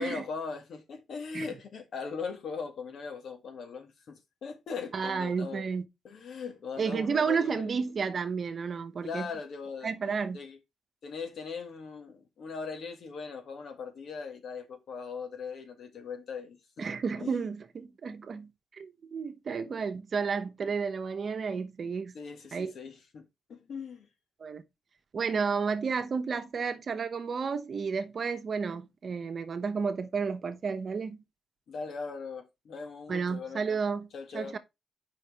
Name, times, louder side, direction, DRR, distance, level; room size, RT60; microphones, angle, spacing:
voice 1, 0.0-5.6 6.0-7.7 9.0-9.9 10.3-10.6 11.0-16.6 17.2-17.4 19.7-19.8 22.1-24.1 31.7-33.8 34.1-34.6, left 5 dB, 70° left, 1.6 m, -40 dB
voice 2, 4.9-5.8 6.8-9.3 9.8-10.4 16.8-22.1 22.5-22.7 24.4-24.6 25.1-31.2 33.1-34.1 34.3-34.6, right 5 dB, 50° right, 0.9 m, -32 dB
7.4 x 5.4 x 3.5 m
cardioid pair, 90°, 0 cm